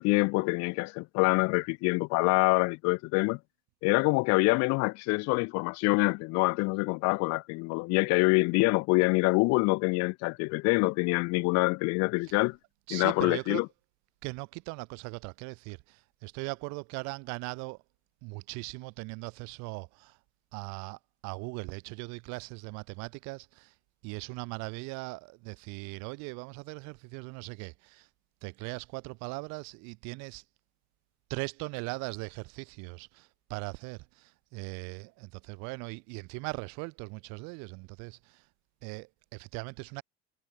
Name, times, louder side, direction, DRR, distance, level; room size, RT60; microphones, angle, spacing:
voice 1, 0.0-3.4 3.8-12.6 12.9-13.6, left 27 dB, 55° left, 1.2 m, -26 dB
voice 2, 12.9-13.6 14.2-17.8 18.2-20.2 20.5-23.7 24.0-28.1 28.4-30.4 31.3-38.5 38.8-40.0, right 29 dB, 60° right, 5.4 m, -39 dB
figure-of-eight pair, 70°, 32 cm